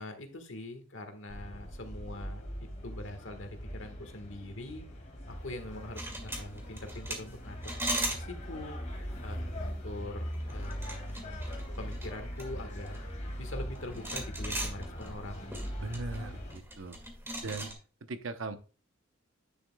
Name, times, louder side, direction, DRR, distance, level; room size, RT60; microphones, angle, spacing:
voice 1, 0.0-2.4 2.8-4.8 5.3-7.8 8.1-8.8 9.2-11.4 11.8-13.0 13.4-15.5, left 1 dB, 70° left, 7 dB, 1.5 m, -43 dB
sound 1, 1.3-16.6, equal, 40° left, 2.5 m, -41 dB
sound 2, 5.5-17.7, right 1 dB, 15° right, 1.9 m, -40 dB
voice 2, 15.8-17.0 17.4-17.7 18.0-18.6, right 3 dB, 75° right, 9 dB, 0.8 m, -39 dB
9.6 x 7.2 x 2.2 m, 0.36 s
head